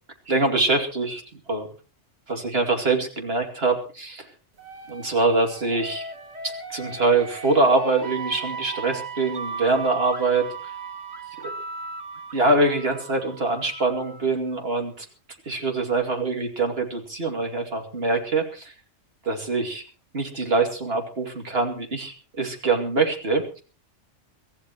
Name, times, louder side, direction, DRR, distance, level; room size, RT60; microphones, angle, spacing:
voice 1, 0.3-1.2 1.5-1.7 2.3-4.3 4.9-6.0 6.4-10.7 11.4-11.5 12.3-15.1 15.5-18.7 19.2-19.8 20.1-23.6, right 3 dB, 50° right, 3 dB, 2.8 m, -24 dB
sound 1, 4.6-14.3, right 4 dB, 35° right, 1.1 m, -36 dB
24.5 x 15.0 x 3.0 m, 0.35 s
omnidirectional pair, 1.3 m